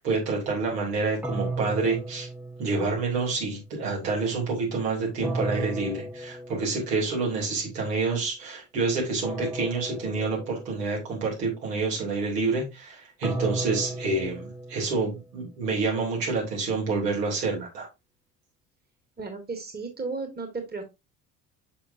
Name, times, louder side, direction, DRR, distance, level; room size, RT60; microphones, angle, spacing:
voice 1, 0.0-2.3 2.6-17.9, right 4 dB, 75° right, 3.1 m, -28 dB
sound 1, 1.2-3.3 5.2-7.1 9.2-11.1 13.2-15.4, right 1 dB, 5° right, 0.6 m, -34 dB
voice 2, 19.2-20.9, right 4 dB, 20° right, 1.8 m, -34 dB
6.7 x 5.9 x 2.7 m
figure-of-eight pair, 55°, 48 cm